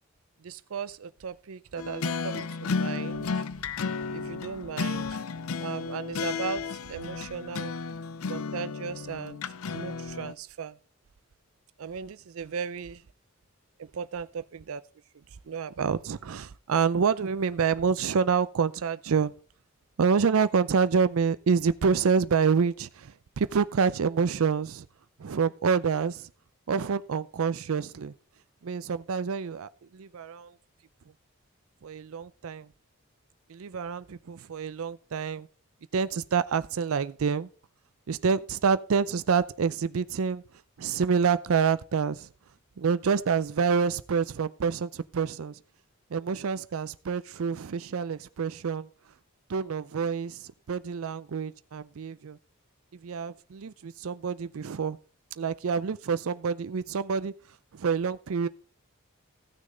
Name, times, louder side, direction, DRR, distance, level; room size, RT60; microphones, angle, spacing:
voice 1, 0.4-3.3 4.1-5.0 5.6-6.6 6.9-7.7 8.3-9.4 9.7-10.7 11.8-12.9 13.9-14.8 15.5-19.3 20.0-24.9 25.2-26.3 26.7-28.1 28.6-30.5 31.8-32.7 33.5-35.5 35.9-37.5 38.1-40.4 40.8-42.3 42.8-45.5 46.1-48.9 49.5-52.4 53.0-55.0 55.4-57.3 57.7-58.5, right 6 dB, 75° right, 0.4 m, -28 dB
sound 1, 1.8-10.3, left 5 dB, 75° left, 0.5 m, -33 dB
15.0 x 6.4 x 3.8 m
head